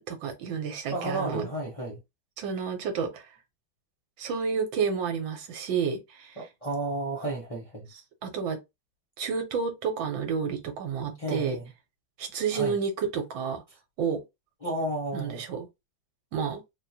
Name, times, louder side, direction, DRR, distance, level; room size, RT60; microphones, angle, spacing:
voice 1, 0.1-1.5 2.4-3.4 4.2-6.4 7.9-8.6 9.2-11.6 12.2-13.6 14.0-14.2 15.1-15.7 16.3-16.6, right 6 dB, 80° right, 1.6 m, -30 dB
voice 2, 0.9-2.0 6.4-7.9 11.2-11.7 12.5-12.8 14.6-15.4, right 1 dB, 45° left, 0.4 m, -32 dB
3.7 x 2.6 x 2.8 m
omnidirectional pair, 2.1 m